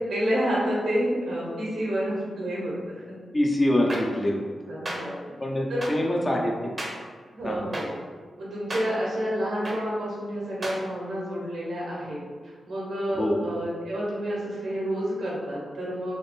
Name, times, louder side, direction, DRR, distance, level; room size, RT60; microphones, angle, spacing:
voice 1, 0.1-3.2 4.7-5.2 5.7-5.9 6.2-6.3 7.3-8.0 8.4-16.2, equal, 80° right, -6 dB, 1.3 m, -29 dB
voice 2, 3.3-4.5 5.4-6.7 7.4-7.7 13.2-13.5, left 1 dB, 25° left, 0 dB, 0.5 m, -25 dB
sound 1, 3.9-4.0 4.9-5.0 5.8-5.9 6.8-6.9 7.7-7.8 8.7-8.8 9.6-9.8 10.6-10.8, right 1 dB, 35° right, 0.7 m, -31 dB
3.4 x 2.0 x 4.1 m, 1.5 s
cardioid pair, 75°, 0 cm